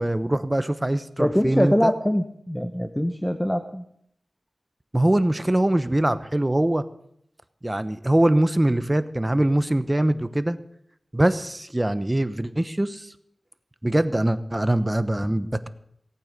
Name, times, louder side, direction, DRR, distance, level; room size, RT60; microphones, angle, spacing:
voice 1, 0.0-1.9 4.9-6.8 7.6-10.6 11.1-13.1 13.8-15.7, right 1 dB, 20° right, 13 dB, 0.9 m, -23 dB
voice 2, 1.2-3.8, equal, 10° left, 8 dB, 0.9 m, -23 dB
18.0 x 8.8 x 6.8 m, 0.71 s
wide cardioid pair, 65°, 0 cm